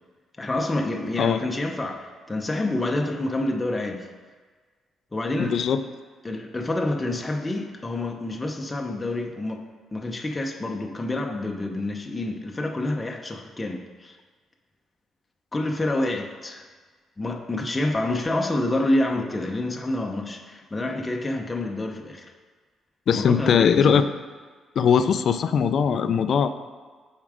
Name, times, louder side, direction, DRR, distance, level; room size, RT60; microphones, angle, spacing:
voice 1, 0.4-4.1 5.1-5.6 6.2-9.6 9.9-14.2 15.5-16.6 17.2-22.3 23.1-24.0, left 2 dB, 20° left, 2 dB, 0.8 m, -28 dB
voice 2, 5.4-5.8 23.1-24.0 24.8-26.5, left 7 dB, 60° left, 11 dB, 0.4 m, -20 dB
7.1 x 4.5 x 5.0 m, 1.5 s
cardioid pair, 105°, 0 cm